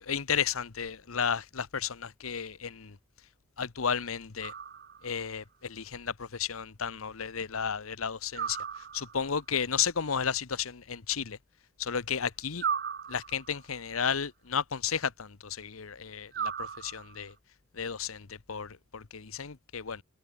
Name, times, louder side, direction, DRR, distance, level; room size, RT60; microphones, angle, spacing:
voice 1, 0.0-3.0 3.6-4.5 5.0-8.6 8.9-11.4 11.8-12.6 13.1-17.3 17.7-20.0, left 7 dB, 85° left, 1.0 m, -33 dB
sound 1, 4.4-5.2 8.3-9.4 12.6-13.7 16.3-17.3, right 7 dB, 50° right, 2.8 m, -36 dB
head